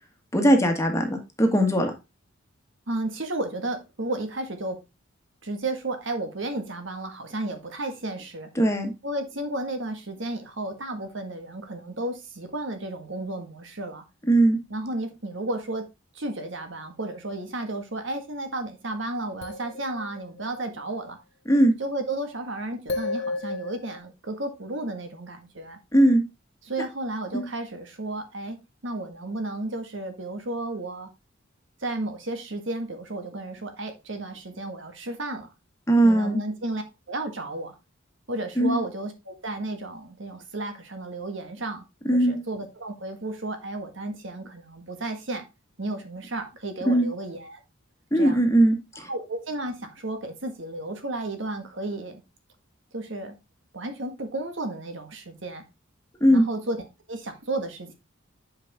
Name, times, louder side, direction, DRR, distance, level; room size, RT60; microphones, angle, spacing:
voice 1, 0.3-1.9 8.6-8.9 14.3-14.6 21.5-21.7 25.9-26.2 27.3-27.4 35.9-36.4 38.6-38.8 42.1-42.4 46.9-47.1 48.1-49.0 56.2-56.5, right 1 dB, 15° left, 1.5 m, -19 dB
voice 2, 2.9-4.8 5.4-8.5 9.0-14.0 14.7-15.8 16.1-21.2 21.8-25.8 26.6-28.6 28.8-31.1 31.8-35.5 36.0-37.8 38.3-41.8 42.1-45.4 45.8-47.6 48.1-48.4 48.9-52.2 52.9-53.4 53.7-55.6 56.3-56.8 57.1-57.9, right 2 dB, 65° right, 1.6 m, -33 dB
sound 1, 19.4-20.8 22.9-24.0, left 3 dB, 60° left, 1.1 m, -33 dB
8.5 x 5.1 x 3.5 m
head